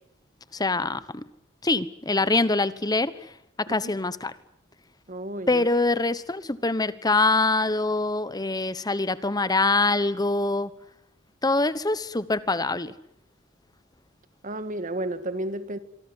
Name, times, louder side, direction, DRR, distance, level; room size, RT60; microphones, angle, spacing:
voice 1, 0.5-1.2 1.6-3.1 3.6-4.3 5.5-10.7 11.4-12.9, left 3 dB, 20° left, 1.1 m, -24 dB
voice 2, 3.7-4.0 5.1-5.7 14.4-15.8, right 1 dB, 40° right, 1.7 m, -32 dB
26.5 x 23.5 x 8.0 m
head